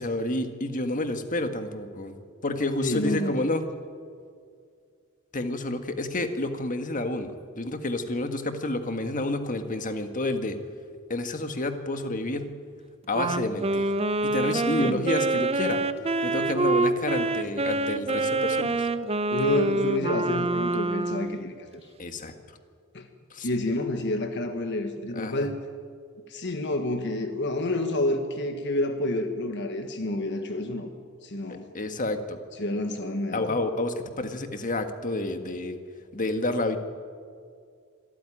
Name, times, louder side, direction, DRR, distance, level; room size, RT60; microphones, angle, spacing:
voice 1, 0.0-2.1 2.4-3.6 5.3-10.6 11.1-12.5 13.1-13.9 14.2-15.8 16.2-18.9 22.0-22.3 23.3-23.5 25.1-25.5 31.5-32.4 33.3-35.8 36.1-36.8, left 2 dB, 35° left, 7 dB, 1.6 m, -29 dB
voice 2, 2.8-3.5 14.8-15.0 19.3-21.8 22.9-23.1 23.4-25.5 26.3-30.9 31.2-31.6 32.6-33.6, left 1 dB, 50° left, 6 dB, 1.5 m, -29 dB
Wind instrument woodwind instrument, 13.1-21.4, right 2 dB, 25° right, 0.7 m, -26 dB
25.5 x 14.0 x 10.0 m, 2.2 s
head